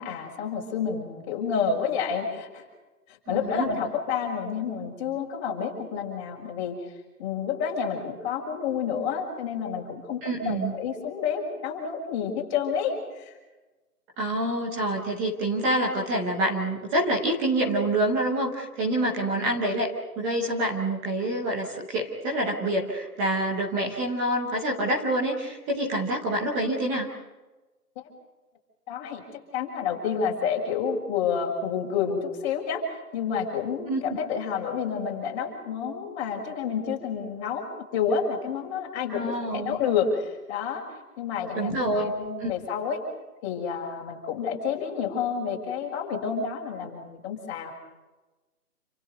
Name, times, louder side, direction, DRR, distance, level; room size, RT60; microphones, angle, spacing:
voice 1, 0.0-2.6 3.1-6.8 7.2-13.3 27.9-28.0 28.9-29.2 29.5-32.8 33.1-37.7 37.9-40.8 41.2-43.0 43.4-47.7, left 6 dB, 20° left, 0 dB, 6.4 m, -29 dB
voice 2, 3.3-3.7 10.2-10.7 14.2-19.9 20.2-27.1 33.9-34.0 39.1-39.8 41.5-42.1 42.4-42.5, right 1 dB, 5° right, -3 dB, 0.8 m, -27 dB
29.5 x 27.5 x 5.3 m, 1.1 s
figure-of-eight pair, 150°, 47 cm